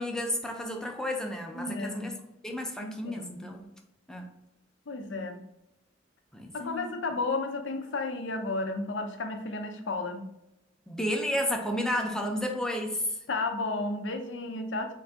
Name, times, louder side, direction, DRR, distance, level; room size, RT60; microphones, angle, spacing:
voice 1, 0.0-2.1 2.4-3.7 4.1-4.3 6.3-6.9 10.9-13.0, left 1 dB, 5° left, 1 dB, 0.5 m, -32 dB
voice 2, 1.5-2.2 2.8-3.6 4.9-5.5 6.5-10.3 13.3-14.9, left 3 dB, 80° left, 7 dB, 0.6 m, -33 dB
3.7 x 2.6 x 3.3 m, 0.85 s
head